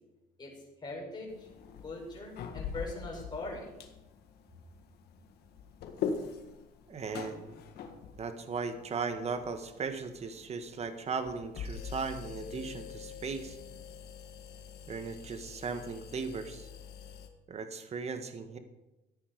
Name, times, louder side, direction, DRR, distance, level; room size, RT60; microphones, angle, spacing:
voice 1, 0.8-1.5 1.8-3.7, left 2 dB, 25° left, -2 dB, 5.1 m, -41 dB
sound 1, 1.3-17.3, left 6 dB, 70° left, 1.7 m, -44 dB
voice 2, 6.9-7.6 8.1-13.6 14.9-16.7 17.5-18.6, right 5 dB, 40° right, 8 dB, 1.5 m, -37 dB
14.0 x 10.0 x 5.3 m, 1.0 s
cardioid pair, 110°, 17 cm